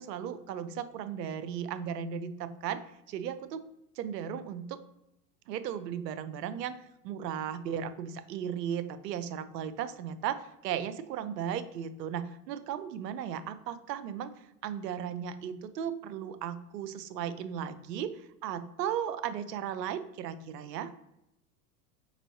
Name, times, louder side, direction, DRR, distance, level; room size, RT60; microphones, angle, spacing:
voice 1, 0.0-2.8 3.1-3.6 4.0-4.8 5.5-6.7 7.0-14.3 14.6-18.1 18.4-20.9, right 9 dB, 90° right, 12 dB, 0.5 m, -36 dB
5.2 x 3.0 x 2.7 m, 0.88 s
hypercardioid pair, 100°, 48 cm